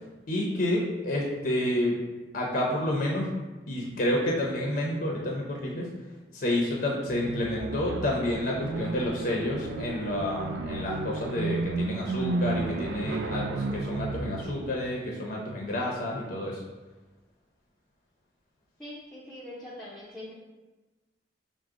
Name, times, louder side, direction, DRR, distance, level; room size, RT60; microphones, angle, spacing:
voice 1, 0.3-2.0 2.3-3.3 3.7-5.9 6.3-16.6, left 1 dB, 55° left, -2 dB, 0.6 m, -29 dB
sound 1, 7.1-14.7, right 3 dB, 80° right, 0.3 m, -33 dB
voice 2, 18.8-20.4, left 1 dB, 5° left, -8 dB, 0.5 m, -42 dB
4.7 x 2.1 x 3.6 m, 1.2 s
head